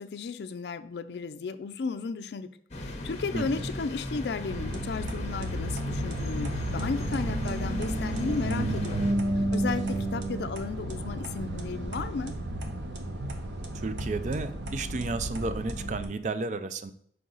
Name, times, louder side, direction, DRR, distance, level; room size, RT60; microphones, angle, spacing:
voice 1, 0.0-9.1 9.5-12.3, left 4 dB, 70° left, 10 dB, 0.4 m, -34 dB
sound 1, 2.7-9.1, left 1 dB, 35° left, 0.9 m, -36 dB
voice 2, 3.3-3.6 13.7-16.9, right 3 dB, 40° right, 12 dB, 0.4 m, -32 dB
sound 2, 4.5-16.0, right 1 dB, 85° right, 0.9 m, -32 dB
6.2 x 4.6 x 3.9 m, 0.66 s
head